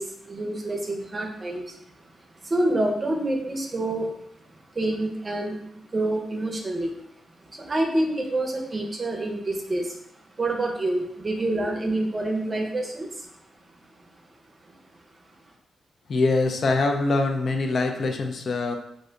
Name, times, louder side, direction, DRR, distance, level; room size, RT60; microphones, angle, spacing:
voice 1, 0.0-1.8 2.4-4.1 4.5-5.6 5.9-7.1 7.4-10.0 10.4-13.4 14.0-14.1, right 1 dB, 30° right, 1 dB, 0.6 m, -27 dB
voice 2, 16.1-18.8, left 3 dB, 55° left, 4 dB, 0.4 m, -23 dB
2.5 x 2.2 x 3.8 m, 0.73 s
cardioid pair, 95°, 0 cm